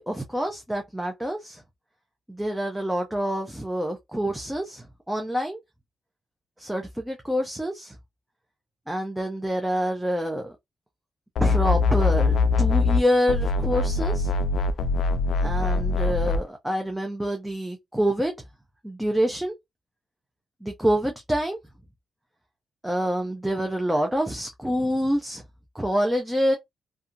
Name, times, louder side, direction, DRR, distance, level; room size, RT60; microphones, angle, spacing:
voice 1, 0.0-1.6 2.3-5.6 6.6-8.0 8.9-10.5 11.4-14.3 15.4-18.3 18.8-19.5 20.6-21.6 22.8-25.4 25.7-26.6, equal, 5° right, 0.6 m, -26 dB
sound 1, 11.4-13.0 13.3-16.4, left 3 dB, 75° left, 0.3 m, -22 dB
2.7 x 2.4 x 2.5 m
cardioid pair, 110°, 0 cm